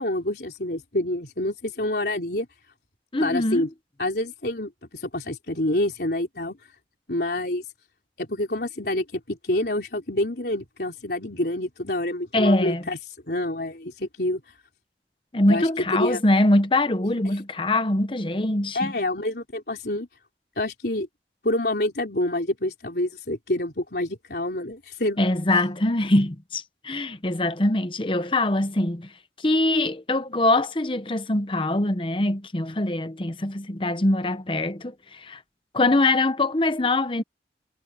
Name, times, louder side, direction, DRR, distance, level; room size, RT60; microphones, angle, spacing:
voice 1, 0.0-2.5 3.2-3.7 4.0-6.6 7.1-7.7 8.2-13.0 13.3-14.4 15.5-15.7 16.0-16.2 17.3-17.4 18.7-20.1 20.6-21.1 21.4-25.3, left 1 dB, 60° left, 3.9 m, -27 dB
voice 2, 3.1-3.7 12.3-12.8 15.3-18.9 25.2-29.1 29.4-35.4 35.7-37.2, left 2 dB, 30° left, 0.9 m, -23 dB
head